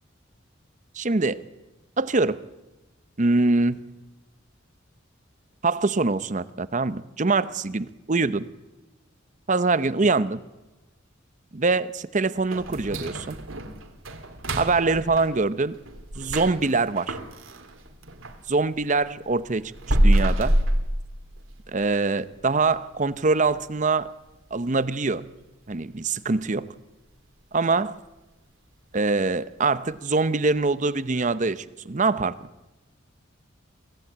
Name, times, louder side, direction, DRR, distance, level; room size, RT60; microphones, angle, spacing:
voice 1, 0.9-1.4 2.0-2.4 3.2-3.8 5.6-8.5 9.5-10.4 11.5-13.4 14.6-15.8 16.1-17.2 18.5-20.6 21.7-24.1 24.5-25.3 25.7-26.7 27.5-27.9 28.9-32.5, right 3 dB, 40° right, 0.8 m, -24 dB
sound 1, 12.5-18.4 18.8-21.7 22.0-22.1 22.6-22.7 23.2-23.6 23.9-24.0 24.5-24.6, right 1 dB, 80° right, 2.5 m, -27 dB
24.5 x 16.5 x 8.7 m
head